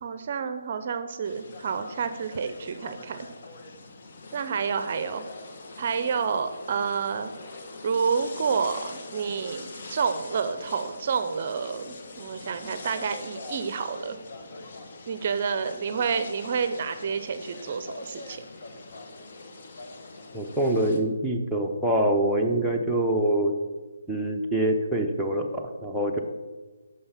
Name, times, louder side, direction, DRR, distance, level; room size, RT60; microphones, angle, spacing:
voice 1, 0.0-3.3 4.3-5.2 5.8-7.3 7.8-14.2 15.1-18.4, right 6 dB, 40° right, 10 dB, 0.6 m, -29 dB
sound 1, 1.2-21.0, left 3 dB, 45° left, 1.1 m, -43 dB
voice 2, 20.3-23.5 24.1-26.2, right 1 dB, ahead, -3 dB, 0.7 m, -25 dB
6.6 x 5.5 x 5.7 m, 1.3 s
figure-of-eight pair, 155°, 0 cm